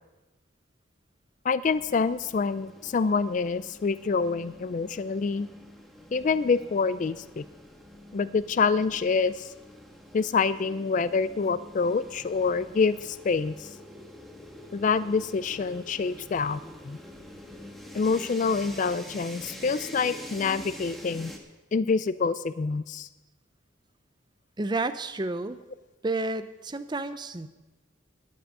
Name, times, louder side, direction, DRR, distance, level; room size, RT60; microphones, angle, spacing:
voice 1, 1.4-5.5 6.1-7.4 8.1-9.5 10.1-13.7 14.7-16.6 16.8-17.0 17.9-21.3 21.7-23.1, left 4 dB, 40° left, 15 dB, 0.3 m, -26 dB
sound 1, 1.6-21.4, left 1 dB, ahead, 1.4 m, -46 dB
voice 2, 24.6-25.6 26.0-27.5, right 2 dB, 20° right, 11 dB, 0.6 m, -30 dB
13.5 x 6.1 x 9.9 m, 1.1 s
head